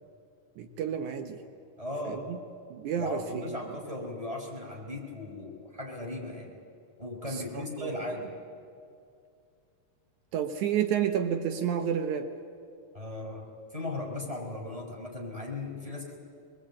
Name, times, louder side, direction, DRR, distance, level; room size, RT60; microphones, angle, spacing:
voice 1, 0.6-1.4 2.1-2.4 2.7-3.8 7.3-8.0 10.3-12.3, right 8 dB, 80° right, 6 dB, 2.4 m, -31 dB
voice 2, 1.8-2.3 3.0-6.6 7.0-8.3 12.9-13.4 13.7-16.2, left 2 dB, 10° right, -1 dB, 4.7 m, -37 dB
24.0 x 22.5 x 8.6 m, 2.4 s
omnidirectional pair, 3.4 m